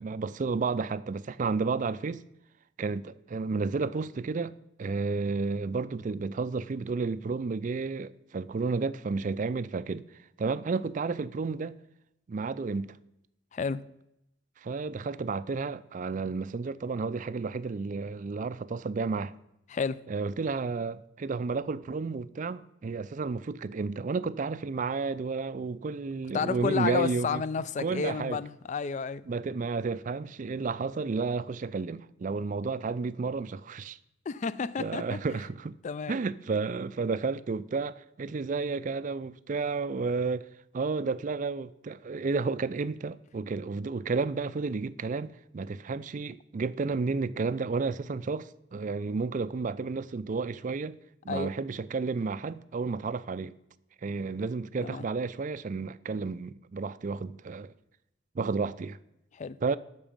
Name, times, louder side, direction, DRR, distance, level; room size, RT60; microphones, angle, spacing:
voice 1, 0.0-2.2 2.8-10.0 10.4-11.8 12.3-13.0 14.6-19.3 20.1-27.4 27.8-28.4 29.3-34.0 34.8-35.7 36.1-40.5 40.7-51.0 51.2-53.5 54.0-57.7 58.4-59.0 59.6-59.8, right 4 dB, 40° right, 0.4 m, -32 dB
voice 2, 13.5-13.9 19.7-20.0 26.3-29.2 34.3-35.2 35.8-36.2 51.3-51.5 54.8-55.1 59.3-59.6, left 5 dB, 35° left, 0.3 m, -31 dB
8.8 x 6.1 x 7.2 m
head